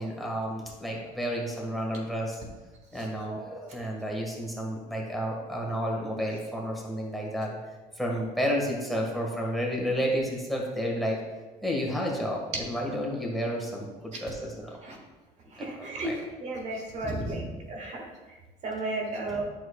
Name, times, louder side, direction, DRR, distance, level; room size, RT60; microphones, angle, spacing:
voice 1, 0.0-2.4 2.9-7.6 8.0-11.2 11.6-14.7 15.6-16.2 17.0-17.5 19.3-19.4, equal, ahead, -1 dB, 1.6 m, -31 dB
voice 2, 15.6-16.1 16.4-17.4 17.7-18.0 18.6-19.4, right 2 dB, 50° right, 0 dB, 1.6 m, -33 dB
9.3 x 6.6 x 2.3 m, 1.2 s
supercardioid pair, 100°, 15 cm